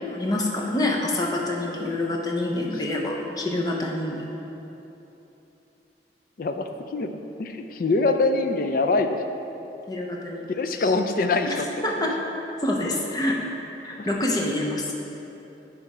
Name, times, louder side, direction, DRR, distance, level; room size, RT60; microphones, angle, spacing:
voice 1, 0.0-4.3 9.9-10.4 10.8-10.9 11.5-11.6 11.8-12.2 12.6-13.4 13.8-14.9, left 1 dB, 20° left, -1 dB, 0.7 m, -26 dB
voice 2, 6.4-7.1 7.4-9.2 10.6-11.7 12.0-12.1 14.0-14.1, left 3 dB, 50° left, 7 dB, 0.4 m, -24 dB
9.5 x 3.4 x 4.8 m, 3.0 s
head